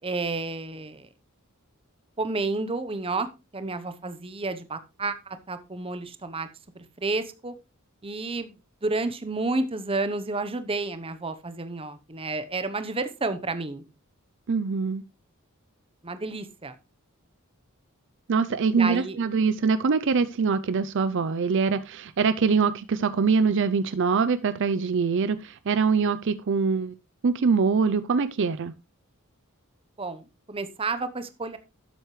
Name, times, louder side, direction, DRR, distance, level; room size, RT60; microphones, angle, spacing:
voice 1, 0.0-1.1 2.2-3.3 3.5-6.5 6.7-7.5 8.0-8.5 8.8-13.8 16.0-16.8 18.8-19.2 30.0-31.6, right 3 dB, 25° right, 11 dB, 0.9 m, -30 dB
voice 2, 14.5-15.0 18.3-26.9 27.2-28.7, right 5 dB, 55° right, 14 dB, 0.5 m, -23 dB
12.0 x 7.9 x 3.2 m, 0.28 s
head